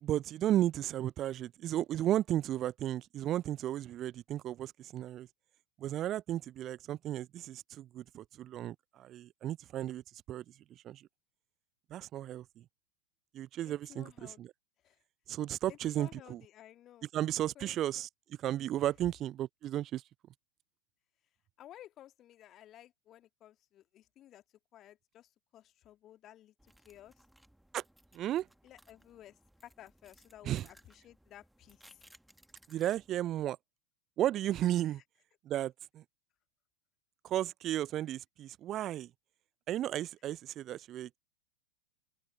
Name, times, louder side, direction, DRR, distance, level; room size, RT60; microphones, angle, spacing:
voice 1, 0.0-5.3 5.8-10.0 10.3-10.4 10.8-11.0 11.9-12.4 13.3-14.5 15.3-16.4 17.1-18.1 18.4-20.0 27.7-27.8 28.1-28.5 30.4-30.7 32.7-33.6 34.2-35.0 35.5-36.0 37.2-39.1 39.7-41.2, right 12 dB, 30° right, 0.4 m, -34 dB
voice 2, 13.6-14.4 14.8-15.0 15.7-17.1 17.6-18.0 21.6-24.4 24.7-26.5 26.8-27.1 28.6-29.4 29.6-32.0, left 12 dB, 30° left, 1.9 m, -55 dB
sound 1, 26.6-33.5, right 1 dB, ahead, 1.9 m, -63 dB
open air
figure-of-eight pair, 90°, 0 cm